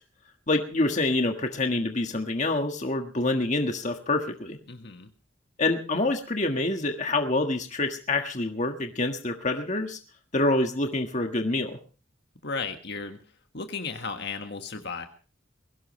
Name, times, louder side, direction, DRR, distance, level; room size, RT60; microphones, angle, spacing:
voice 1, 0.5-4.6 5.6-10.0 10.3-11.8, left 2 dB, 35° left, 4 dB, 1.6 m, -26 dB
voice 2, 4.7-5.1 12.4-13.2 13.5-15.1, left 4 dB, 55° left, 6 dB, 1.6 m, -34 dB
21.5 x 17.0 x 3.2 m, 0.36 s
head